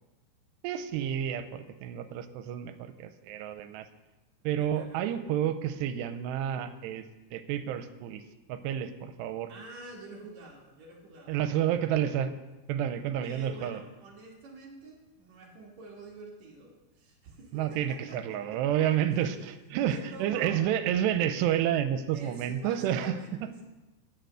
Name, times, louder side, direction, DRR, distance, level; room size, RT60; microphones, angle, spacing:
voice 1, 0.6-3.9 4.4-7.0 7.3-8.2 8.5-9.5 11.3-12.3 12.7-13.8 17.5-23.5, right 10 dB, 90° right, 11 dB, 2.8 m, -30 dB
voice 2, 4.6-5.0 9.5-11.3 13.2-18.6 18.9-19.6 19.9-20.6 22.1-23.6, right 3 dB, 55° right, -2 dB, 2.2 m, -48 dB
9.6 x 6.7 x 7.9 m, 1.1 s
omnidirectional pair, 4.9 m